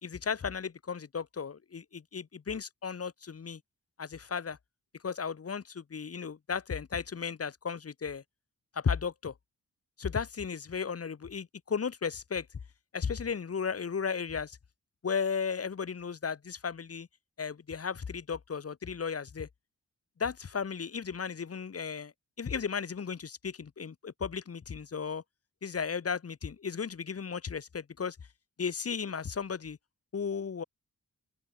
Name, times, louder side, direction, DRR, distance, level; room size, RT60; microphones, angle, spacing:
voice 1, 0.0-3.6 4.0-4.6 5.0-8.2 8.7-9.3 10.0-12.5 12.9-14.6 15.0-17.1 17.4-19.5 20.2-25.2 25.6-28.2 28.6-29.8 30.1-30.6, left 6 dB, 50° left, 3.4 m, -35 dB
open air
wide cardioid pair, 145°, 31 cm